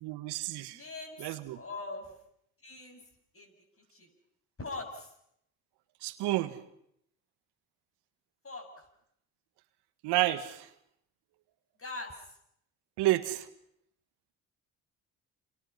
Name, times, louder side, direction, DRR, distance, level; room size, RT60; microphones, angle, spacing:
voice 1, 0.0-0.8 1.2-1.6 6.0-6.5 10.0-10.6 13.0-13.4, right 16 dB, 70° right, 12 dB, 1.6 m, -30 dB
voice 2, 0.7-2.1 2.6-3.0 3.3-3.5 3.9-4.1 4.6-5.1 8.4-8.8 11.8-12.3, left 3 dB, 30° left, 4 dB, 7.6 m, -42 dB
29.5 x 26.0 x 5.7 m, 0.73 s
hypercardioid pair, 55°, 41 cm